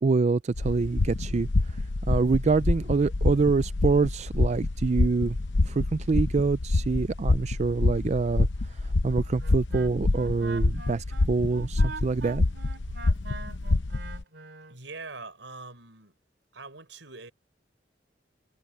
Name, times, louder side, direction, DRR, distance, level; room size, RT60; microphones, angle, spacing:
voice 1, 0.0-5.4 5.6-12.4, right 4 dB, 40° right, 0.4 m, -26 dB
sound 1, 0.5-14.2, left 2 dB, 85° left, 0.8 m, -27 dB
Wind instrument woodwind instrument, 9.4-14.8, right 3 dB, 70° right, 3.9 m, -43 dB
voice 2, 14.7-16.2 16.5-17.3, right 3 dB, 90° right, 6.1 m, -43 dB
head